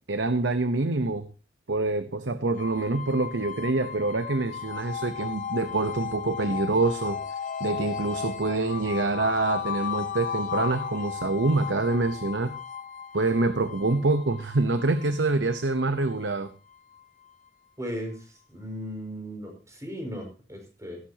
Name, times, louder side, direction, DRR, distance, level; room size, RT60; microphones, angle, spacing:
voice 1, 0.1-1.3 1.7-7.2 7.6-12.5 13.1-16.5, right 3 dB, 85° right, 10 dB, 1.0 m, -26 dB
sound 1, 2.6-17.5, left 7 dB, 45° left, 1.0 m, -35 dB
voice 2, 17.8-21.0, equal, 20° right, 2 dB, 5.8 m, -37 dB
16.5 x 13.5 x 2.9 m, 0.34 s
head